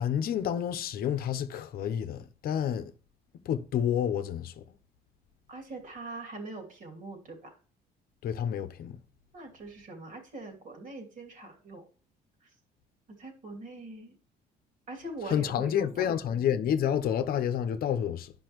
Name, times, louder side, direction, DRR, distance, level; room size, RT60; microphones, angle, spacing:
voice 1, 0.0-2.9 3.5-4.5 8.2-9.0 15.3-18.3, left 9 dB, 65° left, 0.7 m, -29 dB
voice 2, 5.5-7.5 9.3-11.9 12.4-12.5 13.1-14.1 14.9-16.2, right 2 dB, 50° right, 2.7 m, -42 dB
10.5 x 5.5 x 3.0 m
cardioid pair, 110°, 17 cm